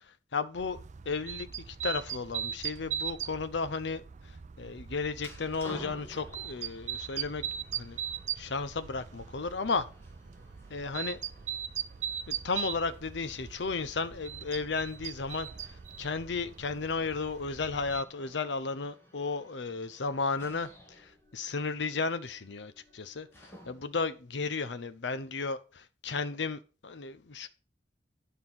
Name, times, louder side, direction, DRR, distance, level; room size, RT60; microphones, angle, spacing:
voice 1, 0.3-0.8 1.1-4.0 4.6-7.4 7.7-8.0 8.4-9.9 10.7-11.2 12.3-15.5 16.0-20.7 21.0-27.5, left 4 dB, 75° left, 0.7 m, -34 dB
sound 1, 0.6-18.0, right 9 dB, 45° right, 0.5 m, -40 dB
sound 2, 5.1-24.1, equal, 15° left, 2.7 m, -54 dB
9.8 x 5.6 x 5.9 m
head